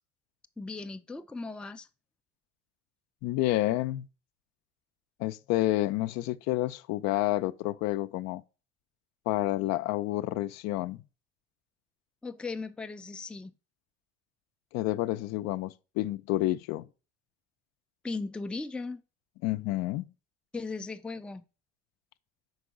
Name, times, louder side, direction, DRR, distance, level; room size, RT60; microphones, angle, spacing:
voice 1, 0.6-1.9 12.2-13.5 18.0-19.0 20.5-21.4, left 3 dB, 5° left, 0.4 m, -37 dB
voice 2, 3.2-4.1 5.2-8.4 9.3-11.0 14.7-16.9 19.4-20.1, left 16 dB, 60° left, 0.5 m, -29 dB
5.1 x 4.7 x 4.8 m
hypercardioid pair, 70°, 31 cm